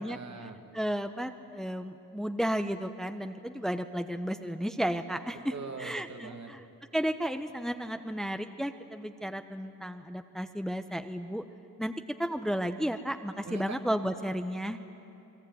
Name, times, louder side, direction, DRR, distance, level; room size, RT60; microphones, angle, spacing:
voice 1, 0.0-0.6 5.5-6.6 13.4-13.8, right 4 dB, 50° right, 5 dB, 2.1 m, -42 dB
voice 2, 0.7-5.5 5.8-6.6 6.9-11.4 11.8-11.9 12.2-14.8, equal, ahead, 8 dB, 1.0 m, -33 dB
28.0 x 20.5 x 9.4 m, 2.8 s
cardioid pair, 65°, 35 cm